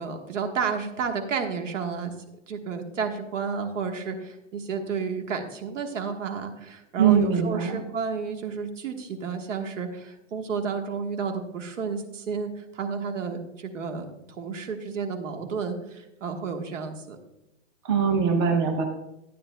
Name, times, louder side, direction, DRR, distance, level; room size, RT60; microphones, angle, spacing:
voice 1, 0.0-2.1 2.5-14.1 14.4-17.2, right 5 dB, 75° right, 5 dB, 1.5 m, -31 dB
voice 2, 7.0-7.8 17.8-18.8, right 7 dB, 25° right, 3 dB, 0.7 m, -21 dB
12.0 x 9.6 x 2.2 m, 0.92 s
hypercardioid pair, 165°, 38 cm